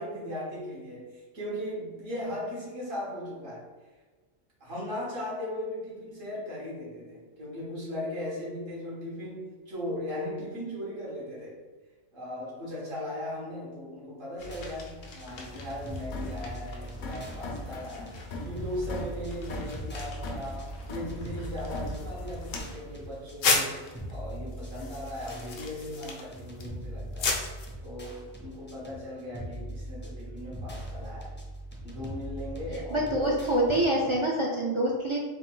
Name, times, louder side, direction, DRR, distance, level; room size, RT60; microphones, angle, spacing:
voice 1, 0.0-3.7 4.6-11.6 12.1-18.1 18.4-31.4 31.8-33.1, left 1 dB, 80° right, -7 dB, 2.0 m, -38 dB
sound 1, 14.4-27.7, left 4 dB, 85° left, 1.1 m, -37 dB
sound 2, 14.4-33.9, right 1 dB, 15° left, 0.4 m, -41 dB
sound 3, 15.3-22.6, left 1 dB, 60° left, 0.7 m, -41 dB
voice 2, 32.9-35.2, right 1 dB, 50° right, -3 dB, 0.3 m, -26 dB
4.1 x 2.5 x 3.8 m, 1.3 s
omnidirectional pair, 1.3 m